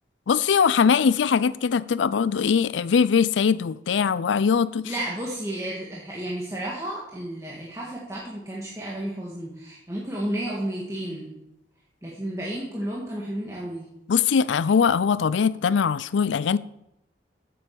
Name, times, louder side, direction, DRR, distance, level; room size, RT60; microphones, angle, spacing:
voice 1, 0.3-4.9 14.1-16.6, left 6 dB, 85° left, 0.4 m, -21 dB
voice 2, 4.8-11.3 12.0-13.9, right 1 dB, 15° right, 1.7 m, -32 dB
8.8 x 7.6 x 7.0 m
head